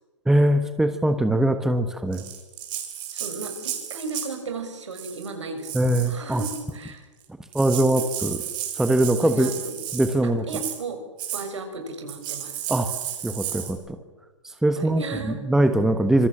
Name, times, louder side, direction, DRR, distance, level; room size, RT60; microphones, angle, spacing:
voice 1, 0.3-2.2 5.7-6.4 7.5-8.4 8.8-9.5 9.9-10.4 12.7-12.9 13.2-14.0 14.6-15.0 15.5-16.3, right 1 dB, 5° right, 8 dB, 1.4 m, -21 dB
Rattle (instrument), 2.1-4.4 4.9-5.3 5.6-6.7 7.2-7.3 7.5-10.2 10.5-10.8 11.2-11.5 12.1-13.7, right 11 dB, 30° right, 5.3 m, -33 dB
voice 2, 3.1-7.0 9.2-9.8 10.5-11.0 11.3-12.5 14.7-15.4, right 3 dB, 70° right, 5 dB, 6.9 m, -35 dB
26.0 x 25.0 x 7.5 m, 1.2 s
figure-of-eight pair, 120°, 16 cm